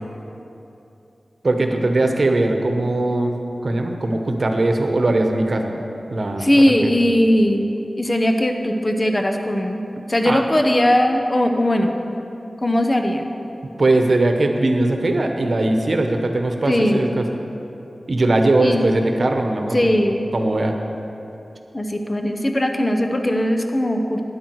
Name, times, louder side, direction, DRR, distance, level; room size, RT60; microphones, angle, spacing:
voice 1, 1.4-3.3 3.6-5.7 6.1-6.9 10.2-10.4 13.8-17.3 18.1-19.8 20.3-20.7, right 2 dB, 60° right, 4 dB, 1.1 m, -20 dB
voice 2, 6.4-7.7 8.0-9.8 10.1-11.9 12.6-13.3 16.7-17.0 18.6-18.8 19.7-20.2 21.7-24.2, left 1 dB, 30° left, 5 dB, 0.8 m, -19 dB
12.0 x 10.0 x 4.7 m, 2.9 s
wide cardioid pair, 65°, 0 cm